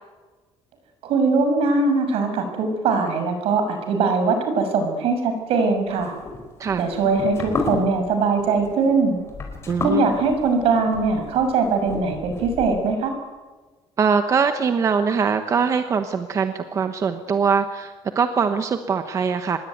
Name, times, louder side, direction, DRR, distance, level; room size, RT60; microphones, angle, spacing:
voice 1, 1.0-6.1 6.8-9.2 9.8-13.1, right 4 dB, 70° right, 7 dB, 6.3 m, -21 dB
sound 1, 5.9-12.9, left 3 dB, 25° left, 4.7 m, -32 dB
voice 2, 9.7-10.1 14.0-19.6, right 6 dB, 30° right, 8 dB, 1.1 m, -22 dB
25.0 x 21.5 x 9.4 m, 1.3 s
cardioid pair, 175°, 10 cm